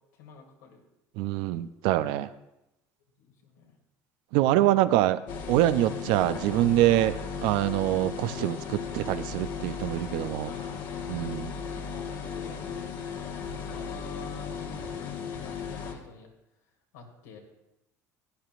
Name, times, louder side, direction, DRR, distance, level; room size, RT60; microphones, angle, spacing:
voice 1, 0.1-0.9 3.2-3.8 10.5-11.3 11.9-13.2 13.4-16.3 16.9-17.4, left 5 dB, 90° left, 1 dB, 2.3 m, -48 dB
voice 2, 1.2-2.3 4.3-5.2 5.5-10.5 11.1-11.5, right 14 dB, 75° right, 13 dB, 0.5 m, -25 dB
sound 1, 5.3-15.9, left 6 dB, 65° left, 1.5 m, -36 dB
15.5 x 10.5 x 2.5 m, 0.89 s
supercardioid pair, 85°, 9 cm